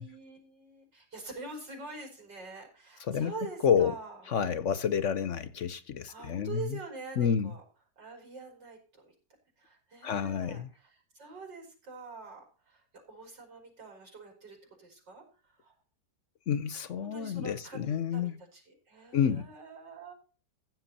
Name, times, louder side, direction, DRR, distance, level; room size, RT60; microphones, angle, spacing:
voice 1, 0.0-4.2 6.1-7.6 8.0-9.1 9.6-15.7 17.0-20.1, right 3 dB, 90° right, 5.8 m, -45 dB
voice 2, 3.6-3.9 4.3-6.8 7.2-7.5 10.0-10.7 16.5-18.3 19.1-19.5, left 8 dB, 55° left, 0.9 m, -29 dB
15.5 x 7.9 x 4.1 m
omnidirectional pair, 1.8 m